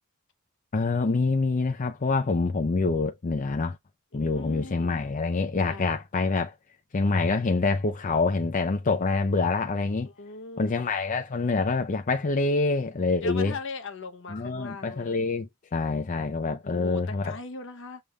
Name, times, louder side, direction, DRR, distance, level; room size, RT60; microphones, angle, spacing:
voice 1, 0.7-3.8 4.1-6.5 6.9-10.1 10.6-13.5 14.3-17.4, left 3 dB, 40° left, 0.5 m, -26 dB
voice 2, 4.1-5.0 5.7-6.0 10.0-10.8 13.2-15.3 16.6-18.0, left 3 dB, 65° left, 0.8 m, -40 dB
6.7 x 3.4 x 2.3 m
head